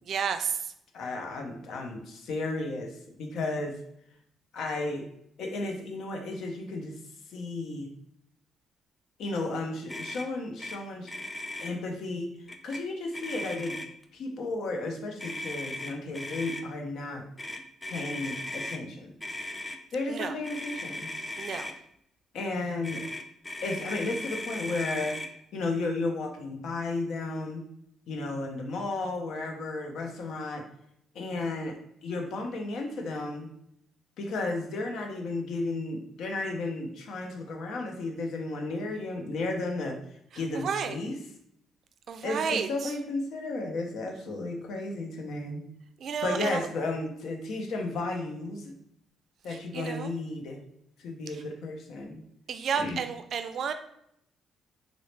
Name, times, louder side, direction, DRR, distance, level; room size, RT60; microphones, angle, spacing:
voice 1, 0.0-0.7 20.1-20.3 21.4-21.7 40.5-41.0 42.1-42.9 46.0-46.7 49.5-50.1 51.3-51.4 52.5-53.7, right 6 dB, 60° right, 9 dB, 0.3 m, -31 dB
voice 2, 0.9-3.8 4.5-5.1 5.4-7.0 7.3-7.9 9.2-11.1 11.6-12.3 12.6-13.8 14.1-17.3 17.8-19.1 19.9-21.1 22.3-23.0 23.6-25.2 25.5-27.6 28.1-30.6 31.1-31.7 32.0-33.5 34.2-40.0 40.4-41.2 42.2-45.6 46.2-48.7 49.4-50.6 51.0-52.2 52.8-53.0, left 2 dB, 75° left, 2 dB, 0.6 m, -33 dB
Motor vehicle (road), 9.9-10.3 10.6-10.8 11.0-11.7 12.5-12.8 13.1-14.0 15.2-16.6 17.4-18.8 19.2-19.8 20.4-21.7 22.8-25.3, left 1 dB, 20° left, 0.3 m, -37 dB
3.8 x 2.0 x 3.2 m, 0.73 s
cardioid pair, 90°, 0 cm